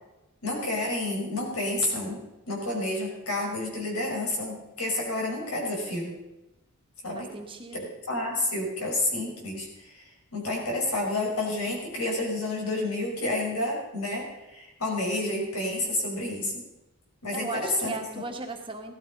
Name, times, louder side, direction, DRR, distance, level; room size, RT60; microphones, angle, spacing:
voice 1, 0.4-6.1 7.0-7.3 7.7-10.0 10.3-16.6 17.2-17.9, left 2 dB, 80° left, -1 dB, 5.7 m, -30 dB
voice 2, 7.1-7.9 17.3-18.9, right 3 dB, 25° right, 3 dB, 1.6 m, -37 dB
17.0 x 12.5 x 5.3 m, 0.96 s
head